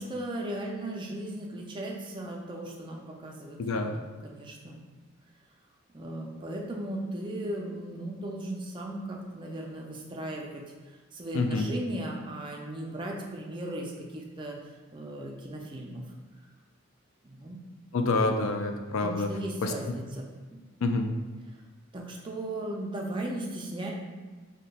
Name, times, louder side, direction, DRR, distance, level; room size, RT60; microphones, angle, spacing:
voice 1, 0.0-4.8 5.9-14.6 14.9-16.1 17.2-17.6 19.0-21.0 21.9-23.9, right 1 dB, 25° right, 0 dB, 0.4 m, -37 dB
voice 2, 3.6-3.9 11.3-11.7 17.9-19.3 19.6-19.7 20.8-21.1, left 3 dB, 80° left, 5 dB, 0.3 m, -27 dB
2.7 x 2.1 x 4.0 m, 1.3 s
head